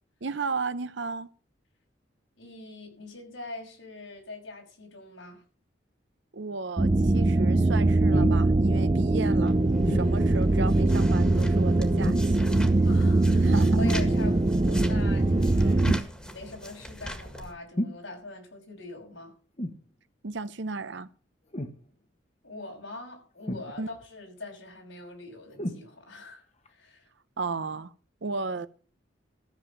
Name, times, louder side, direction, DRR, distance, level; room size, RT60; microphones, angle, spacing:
voice 1, 0.2-1.3 6.3-9.6 9.9-12.5 13.4-13.8 15.6-15.8 20.2-21.1 23.8-23.9 27.4-27.9 28.2-28.7, right 4 dB, 70° right, 0.7 m, -34 dB
voice 2, 2.4-5.4 12.8-16.0 16.2-19.3 22.4-26.4 26.7-27.1, left 2 dB, 85° left, 6.0 m, -42 dB
sound 1, 6.8-16.0, right 2 dB, 25° right, 0.5 m, -22 dB
sound 2, 8.1-8.5 9.9-10.1 12.0-12.4 13.8-14.1 15.9-16.1 17.8-18.0 19.6-19.8 21.5-21.8 23.5-24.0 25.6-25.8 26.7-26.8, left 1 dB, 35° left, 1.1 m, -31 dB
sound 3, 9.5-17.5, equal, 5° left, 1.7 m, -42 dB
14.0 x 7.0 x 7.2 m
head